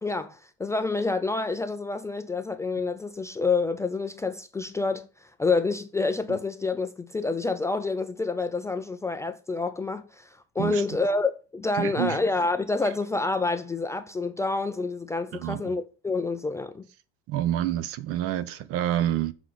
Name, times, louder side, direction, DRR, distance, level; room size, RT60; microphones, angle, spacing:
voice 1, 0.0-5.1 5.4-10.3 10.6-16.9, left 3 dB, 10° left, 0.4 m, -28 dB
voice 2, 11.7-12.2 15.3-15.7 17.3-19.3, right 12 dB, 50° right, 0.8 m, -28 dB
7.6 x 3.8 x 6.2 m
supercardioid pair, 135°, 30 cm